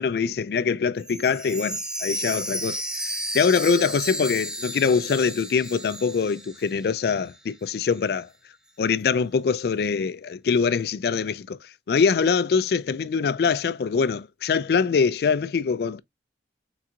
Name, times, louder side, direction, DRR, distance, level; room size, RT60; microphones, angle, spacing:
voice 1, 0.0-2.8 3.3-8.3 8.8-16.0, left 5 dB, 60° left, 0.3 m, -23 dB
Chime, 1.0-7.0 7.3-7.4 7.9-8.0, right 1 dB, 5° right, 0.5 m, -33 dB
4.3 x 3.8 x 2.4 m
head